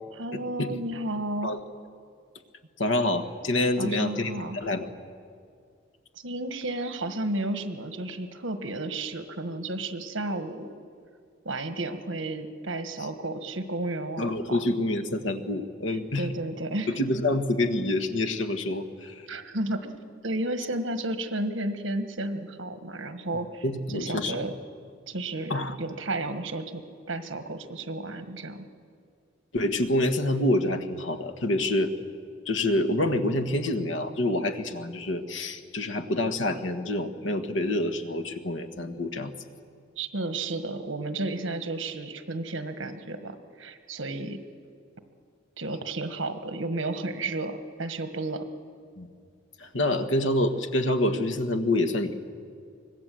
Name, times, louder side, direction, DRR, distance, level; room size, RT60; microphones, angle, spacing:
voice 1, 0.1-1.6 3.8-4.6 6.1-10.7 11.4-14.6 15.9-17.0 19.3-19.9 20.2-24.6 25.1-25.5 25.8-28.7 40.0-44.4 45.6-48.5, right 2 dB, 70° right, 8 dB, 1.6 m, -32 dB
voice 2, 2.8-4.9 14.2-16.3 16.9-19.2 23.6-24.4 25.5-25.7 29.5-31.9 32.4-39.3 49.0-49.1 49.6-52.1, left 1 dB, 70° left, 7 dB, 1.5 m, -27 dB
25.0 x 20.0 x 7.7 m, 2.2 s
head